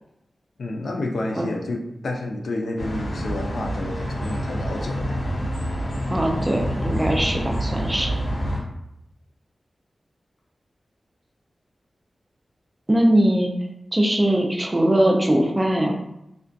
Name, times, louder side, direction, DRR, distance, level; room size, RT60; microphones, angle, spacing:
voice 1, 0.6-5.2, left 2 dB, 80° left, 2 dB, 0.3 m, -30 dB
sound 1, 2.8-8.6, equal, 65° left, 0.8 m, -27 dB
voice 2, 6.1-8.1 12.9-13.5 13.9-15.9, right 1 dB, 20° right, 1 dB, 0.4 m, -20 dB
2.3 x 2.2 x 2.5 m, 0.83 s
wide cardioid pair, 110°, 0 cm